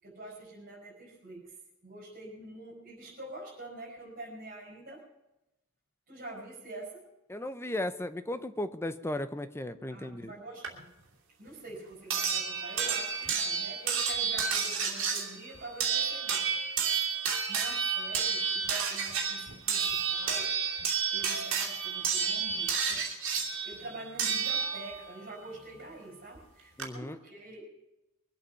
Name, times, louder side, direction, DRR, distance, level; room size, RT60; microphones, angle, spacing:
voice 1, 0.0-1.6 1.8-5.0 6.1-7.1 9.9-10.9 11.4-16.6 17.5-20.5 21.1-23.0 23.6-27.7, right 2 dB, 45° right, -6 dB, 5.0 m, -46 dB
voice 2, 7.3-10.3 26.8-27.2, left 1 dB, 10° left, 11 dB, 0.7 m, -35 dB
sound 1, 10.6-10.7 12.1-25.1 26.4-26.5 26.8-26.9, right 6 dB, 65° right, 2.8 m, -30 dB
23.0 x 8.4 x 5.7 m, 0.96 s
head